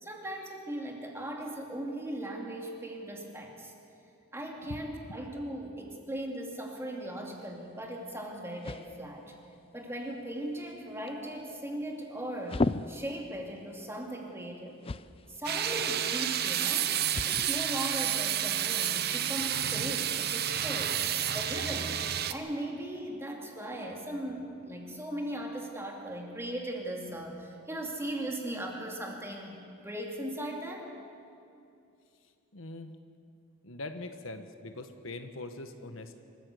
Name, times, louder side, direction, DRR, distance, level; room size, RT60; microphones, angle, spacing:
voice 1, 0.0-3.7 4.3-9.3 9.7-14.7 15.3-17.0 17.3-21.0 21.3-29.6 29.8-30.9, right 1 dB, 15° right, 0 dB, 2.7 m, -38 dB
voice 2, 4.6-5.3 32.5-32.9 33.6-36.2, left 2 dB, 80° left, 8 dB, 1.3 m, -42 dB
sound 1, 7.3-20.7, left 3 dB, 30° left, 0.4 m, -41 dB
sound 2, 15.4-22.3, right 10 dB, 50° right, 0.8 m, -30 dB
24.5 x 14.0 x 8.3 m, 2.6 s
head